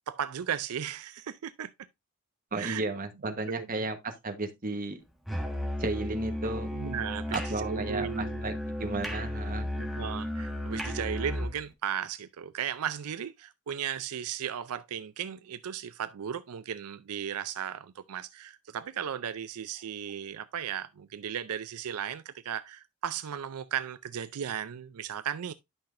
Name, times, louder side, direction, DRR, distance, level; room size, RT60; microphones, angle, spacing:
voice 1, 0.1-1.7 2.6-2.8 3.5-3.9 6.7-8.4 9.8-25.5, right 8 dB, 80° right, 0.4 m, -36 dB
voice 2, 2.5-5.0 5.8-6.7 7.3-8.5 8.8-9.7, right 2 dB, 40° right, 1.1 m, -34 dB
Musical instrument, 5.3-11.6, left 1 dB, ahead, 1.4 m, -34 dB
11.0 x 5.9 x 2.5 m
head